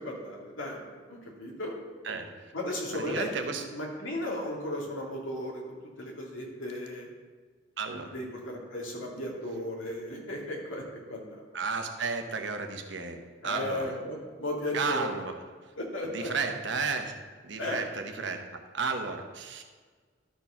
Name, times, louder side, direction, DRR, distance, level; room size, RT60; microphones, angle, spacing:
voice 1, 0.0-1.7 2.5-3.3 3.7-7.1 8.1-10.8 11.1-11.4 13.4-15.1 15.8-16.3 17.6-17.8, left 1 dB, 90° left, -1 dB, 2.4 m, -35 dB
voice 2, 2.0-2.5 2.9-3.7 7.8-8.1 11.5-14.0 14.7-15.3 16.0-17.1 17.4-19.6, right 4 dB, 65° right, 5 dB, 1.0 m, -33 dB
12.5 x 4.5 x 5.7 m, 1.5 s
head